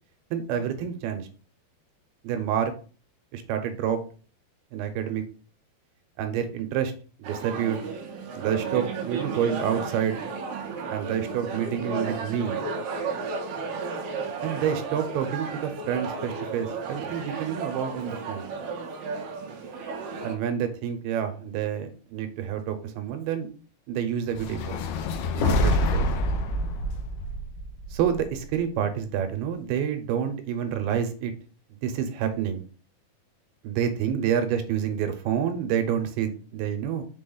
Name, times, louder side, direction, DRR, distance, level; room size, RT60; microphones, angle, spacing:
voice 1, 0.3-1.3 2.2-2.7 3.3-4.0 4.7-5.3 6.2-6.9 7.2-7.8 8.3-10.2 10.9-12.6 14.4-18.5 20.2-23.5 23.9-24.8 25.3-26.0 27.9-31.3 31.8-32.6 33.6-37.1, right 8 dB, 85° right, 7 dB, 2.7 m, -28 dB
sound 1, 7.2-20.4, right 4 dB, 70° right, 1.9 m, -34 dB
sound 2, 24.3-28.6, left 1 dB, 80° left, 2.6 m, -26 dB
6.3 x 4.2 x 3.8 m, 0.39 s
omnidirectional pair, 4.4 m